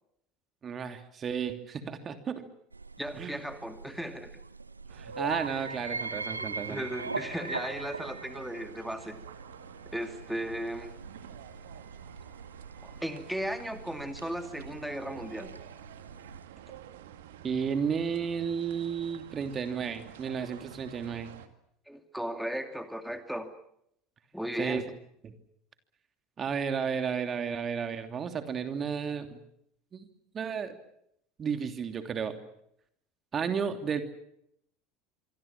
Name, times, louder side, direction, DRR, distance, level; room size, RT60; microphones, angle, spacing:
voice 1, 0.6-2.4 3.1-3.4 5.0-6.8 17.4-21.3 24.6-24.8 25.2-25.3 26.4-29.4 29.9-30.1 30.3-30.7 31.4-32.4 33.3-34.0, right 6 dB, 35° right, 7 dB, 3.0 m, -33 dB
sound 1, 2.7-16.5, right 3 dB, 90° right, 1.0 m, -42 dB
voice 2, 3.0-4.3 6.4-9.2 9.9-10.9 12.8-15.5 21.9-23.5 24.3-24.9, equal, ahead, 7 dB, 2.5 m, -36 dB
sound 2, 4.9-21.5, right 11 dB, 70° right, 2.1 m, -50 dB
26.5 x 24.0 x 7.3 m, 0.74 s
figure-of-eight pair, 70°, 0 cm